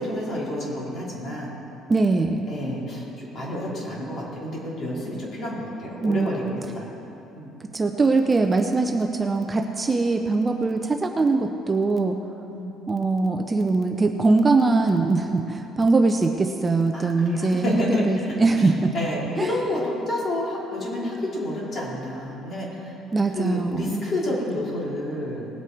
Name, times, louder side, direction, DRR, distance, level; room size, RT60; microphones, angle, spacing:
voice 1, 0.0-1.5 2.5-6.9 7.3-7.5 12.5-12.7 16.9-22.9 23.3-25.5, left 1 dB, 30° left, -5 dB, 3.2 m, -29 dB
voice 2, 1.9-2.5 6.0-6.5 7.7-12.2 12.9-18.9 19.4-19.5 23.1-24.0, right 3 dB, 15° right, 5 dB, 0.5 m, -22 dB
19.0 x 8.1 x 4.6 m, 2.9 s
cardioid pair, 160°, 0 cm